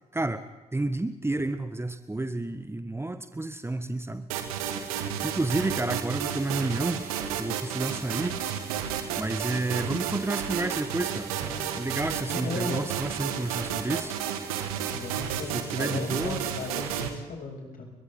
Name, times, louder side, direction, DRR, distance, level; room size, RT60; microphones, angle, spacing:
voice 1, 0.1-0.4 0.7-4.3 5.2-7.0 7.4-8.4 9.2-14.1 15.5-16.4, right 2 dB, 15° right, 10 dB, 1.6 m, -30 dB
sound 1, 4.3-17.1, right 9 dB, 75° right, 1.9 m, -32 dB
voice 2, 12.3-12.8 14.9-17.8, left 4 dB, 50° left, 0 dB, 7.9 m, -36 dB
29.5 x 24.0 x 4.0 m, 1.1 s
figure-of-eight pair, 40°, 19 cm